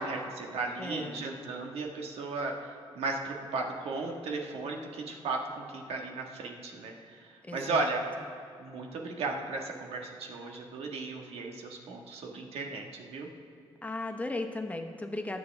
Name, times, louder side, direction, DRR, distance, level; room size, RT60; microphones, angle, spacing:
voice 1, 0.0-8.0 8.6-13.3, right 3 dB, 90° right, 1 dB, 1.6 m, -35 dB
voice 2, 0.8-1.2 7.4-7.9 13.8-15.4, left 2 dB, 15° left, 4 dB, 1.2 m, -36 dB
21.0 x 7.7 x 3.5 m, 2.5 s
cardioid pair, 100°, 10 cm